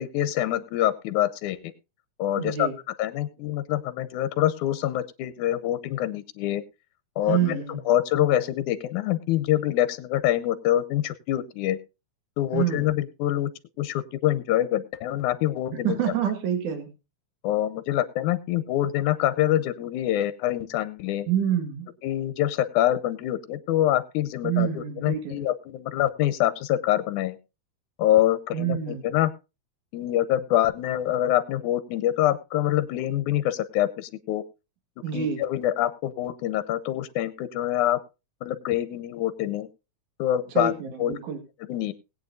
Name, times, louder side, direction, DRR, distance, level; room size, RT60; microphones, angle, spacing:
voice 1, 0.0-1.6 2.2-2.7 3.0-6.6 7.2-11.8 12.4-13.5 13.8-16.0 17.4-21.3 22.0-27.4 28.0-29.3 29.9-34.4 35.1-38.0 38.4-39.7 40.2-40.7 41.0-41.2 41.7-41.9, left 13 dB, 85° left, 13 dB, 2.2 m, -25 dB
voice 2, 2.4-2.7 7.3-7.8 12.5-12.9 15.8-16.9 21.3-21.9 24.4-25.5 28.5-29.1 35.0-35.4 40.5-41.4, right 9 dB, 85° right, 7 dB, 3.3 m, -27 dB
20.0 x 8.9 x 2.6 m, 0.28 s
omnidirectional pair, 3.4 m